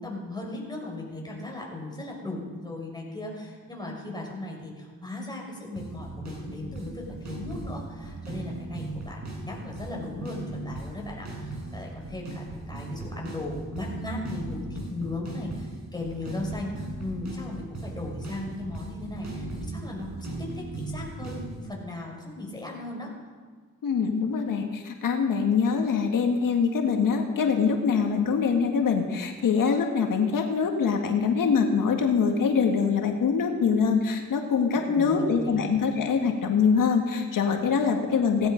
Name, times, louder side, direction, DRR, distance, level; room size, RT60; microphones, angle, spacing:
voice 1, 0.0-20.3 20.5-23.1 34.7-35.6, left 2 dB, 10° left, -1 dB, 6.2 m, -37 dB
sound 1, 5.8-21.7, right 2 dB, 55° right, 6.7 m, -38 dB
voice 2, 23.8-38.5, left 5 dB, 75° left, 3 dB, 1.9 m, -24 dB
18.0 x 15.5 x 5.2 m, 1.5 s
cardioid pair, 70°, 33 cm